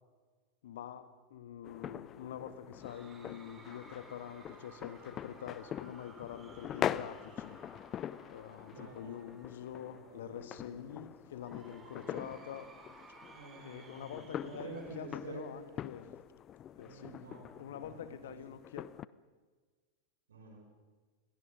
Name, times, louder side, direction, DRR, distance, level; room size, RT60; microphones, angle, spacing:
voice 1, 0.6-7.6 8.3-12.7 13.6-16.1 16.8-17.3 17.6-18.9, left 9 dB, 60° left, 12 dB, 1.7 m, -46 dB
sound 1, 1.6-19.0, left 10 dB, 30° left, 0.6 m, -44 dB
Cheering / Crowd, 2.8-10.1 11.4-16.1, right 3 dB, 20° right, 4.2 m, -58 dB
voice 2, 8.7-9.1 9.9-11.0 12.0-12.4 13.3-15.5 16.8-18.4 20.3-20.7, right 3 dB, 65° right, 2 dB, 5.4 m, -49 dB
28.5 x 21.5 x 5.3 m, 1.4 s
figure-of-eight pair, 90°, 0 cm